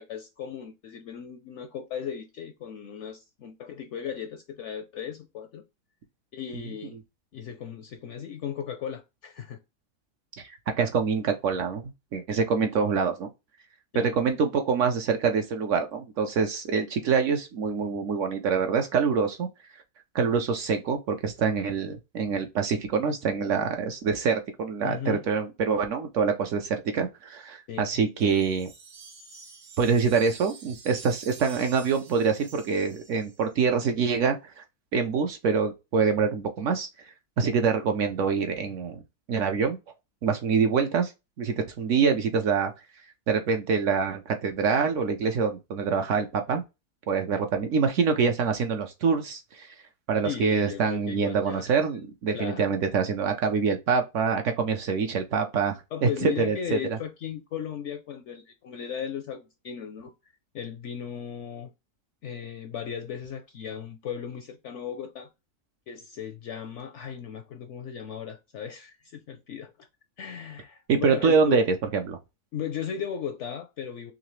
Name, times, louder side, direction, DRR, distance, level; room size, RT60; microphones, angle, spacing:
voice 1, 0.0-5.6 6.3-7.0 7.3-9.6 13.9-14.2 24.8-25.3 27.7-27.9 50.2-51.7 52.3-52.8 55.9-60.1 60.5-61.7 62.2-65.3 65.9-69.9 70.2-71.7 72.5-74.1, left 8 dB, 70° left, 0.7 m, -36 dB
voice 2, 10.4-13.3 13.9-19.5 20.1-28.7 29.8-34.6 34.9-39.0 39.3-39.8 40.2-41.1 41.4-42.7 43.3-46.6 47.1-49.7 50.1-56.8 70.9-71.6 71.9-72.2, right 5 dB, 65° right, 0.8 m, -25 dB
Wind chime, 28.2-33.6, right 5 dB, 90° right, 1.6 m, -48 dB
3.8 x 2.9 x 3.0 m
omnidirectional pair, 1.6 m